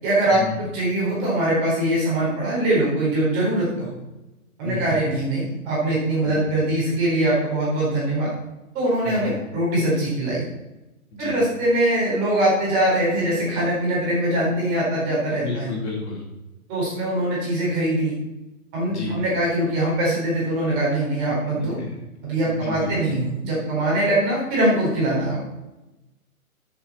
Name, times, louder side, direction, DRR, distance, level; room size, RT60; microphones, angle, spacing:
voice 1, 0.0-3.9 4.6-8.3 8.7-10.4 11.2-15.8 16.7-18.1 18.7-21.8 22.2-25.4, right 1 dB, 20° right, -5 dB, 4.1 m, -22 dB
voice 2, 4.6-4.9 6.2-6.4 9.0-9.3 11.1-11.4 15.4-16.2 18.9-19.1 21.6-21.9 22.5-22.9, left 3 dB, 50° left, -3 dB, 3.8 m, -31 dB
11.5 x 7.2 x 4.3 m, 1.0 s
hypercardioid pair, 155°, 44 cm